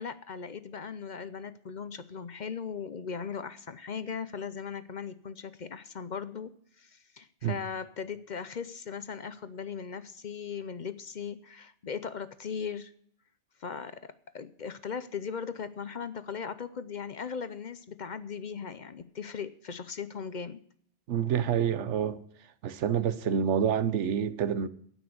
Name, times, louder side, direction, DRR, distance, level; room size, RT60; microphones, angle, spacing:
voice 1, 0.0-6.5 6.8-12.9 13.6-20.6, left 6 dB, 50° left, 0.7 m, -38 dB
voice 2, 21.1-22.2 22.6-24.7, right 8 dB, 85° right, 1.1 m, -27 dB
16.5 x 6.2 x 7.7 m
omnidirectional pair, 1.2 m